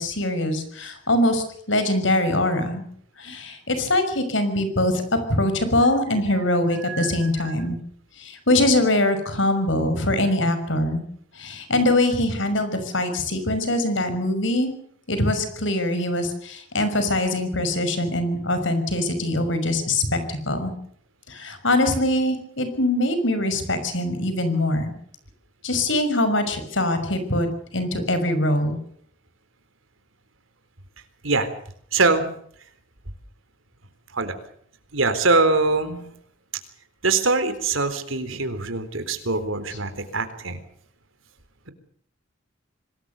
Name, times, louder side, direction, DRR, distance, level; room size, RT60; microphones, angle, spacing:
voice 1, 0.0-2.8 3.2-5.0 5.3-7.8 8.2-11.0 11.3-14.7 15.1-20.7 21.3-24.9 25.6-27.5 27.7-28.8, left 1 dB, 70° left, 10 dB, 6.0 m, -23 dB
voice 2, 6.8-7.2 7.4-7.5 31.2-31.5 31.9-32.3 34.1-34.3 34.9-36.0 37.0-40.6, right 3 dB, 90° right, 10 dB, 3.9 m, -23 dB
26.5 x 20.0 x 6.9 m, 0.63 s
head